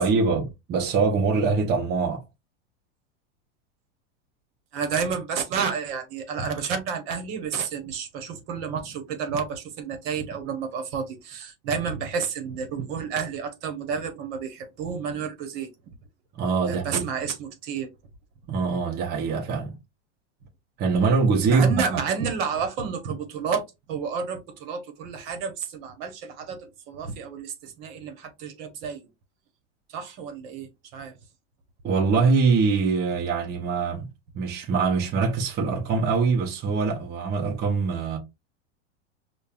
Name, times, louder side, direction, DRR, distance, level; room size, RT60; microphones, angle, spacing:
voice 1, 0.0-2.2 16.3-17.1 18.5-19.7 20.8-21.8 31.8-34.0 34.3-38.2, right 4 dB, 30° right, 0.8 m, -23 dB
voice 2, 4.7-15.9 16.7-17.9 21.5-29.1 29.9-31.2, right 6 dB, 60° right, 1.1 m, -30 dB
5.2 x 2.3 x 2.3 m
supercardioid pair, 125°, 34 cm